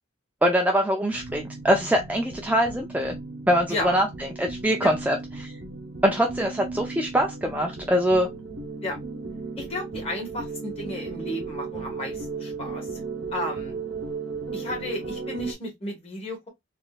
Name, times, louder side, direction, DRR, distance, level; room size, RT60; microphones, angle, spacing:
voice 1, 0.4-3.1 3.5-5.5 6.0-8.3, equal, 10° right, 0.4 m, -23 dB
sound 1, 1.1-15.5, right 4 dB, 75° right, 0.9 m, -36 dB
voice 2, 3.7-4.0 4.8-4.9 8.8-9.0 9.6-12.9 13.3-13.8 14.5-16.5, left 1 dB, 30° left, 1.6 m, -33 dB
3.7 x 2.6 x 2.4 m
head